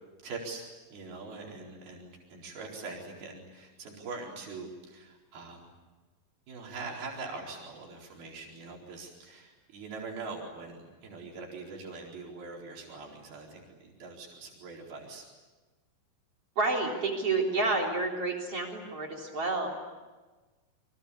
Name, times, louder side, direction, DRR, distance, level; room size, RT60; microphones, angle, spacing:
voice 1, 0.2-0.6 0.9-5.7 6.5-15.3, right 3 dB, 90° right, -1 dB, 6.2 m, -43 dB
voice 2, 16.6-19.7, right 3 dB, 40° right, 1 dB, 4.4 m, -29 dB
28.0 x 24.5 x 8.5 m, 1.3 s
omnidirectional pair, 4.2 m